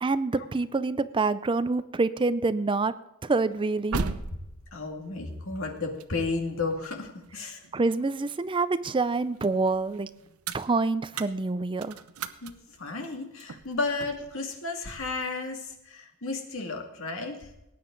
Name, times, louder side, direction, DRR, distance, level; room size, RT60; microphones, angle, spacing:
voice 1, 0.0-2.9 3.2-4.1 7.7-10.1 10.5-12.0, right 3 dB, 25° right, 14 dB, 0.4 m, -26 dB
sound 1, 3.4-8.5 8.9-14.3, right 4 dB, 90° right, 0.8 m, -39 dB
voice 2, 4.7-7.6 12.4-12.5 12.8-17.5, left 3 dB, 65° left, 3 dB, 2.2 m, -33 dB
19.0 x 9.4 x 3.9 m, 0.91 s
head